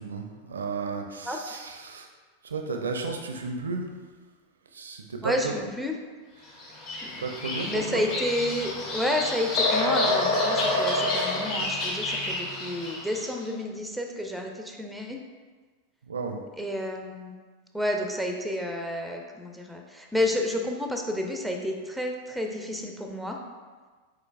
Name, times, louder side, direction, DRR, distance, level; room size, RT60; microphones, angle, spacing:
voice 1, 0.0-2.1 2.4-3.9 4.7-5.5 7.2-8.0 16.1-16.4, right 4 dB, 70° right, 4 dB, 0.5 m, -33 dB
voice 2, 1.2-1.6 5.2-5.9 7.0-7.3 7.6-15.2 16.6-17.3 17.7-23.4, left 1 dB, ahead, 2 dB, 0.5 m, -30 dB
Bird vocalization bird call bird song, 6.6-13.2, left 2 dB, 40° left, 1.0 m, -28 dB
4.9 x 3.9 x 2.5 m, 1.4 s
figure-of-eight pair, 90°, 0 cm